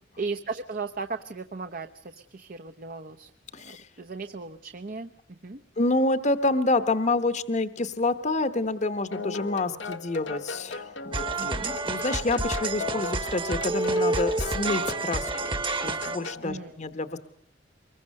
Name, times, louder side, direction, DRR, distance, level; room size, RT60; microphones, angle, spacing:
voice 1, 0.2-5.6 11.4-11.7 16.4-16.8, right 4 dB, 50° right, 8 dB, 0.9 m, -37 dB
voice 2, 3.5-3.9 5.8-17.2, left 2 dB, 40° left, 11 dB, 1.1 m, -28 dB
sound 1, 9.1-16.5, left 4 dB, 85° left, 1.2 m, -38 dB
sound 2, 11.1-16.3, right 2 dB, 25° right, 1.3 m, -29 dB
24.5 x 22.0 x 6.5 m, 0.64 s
head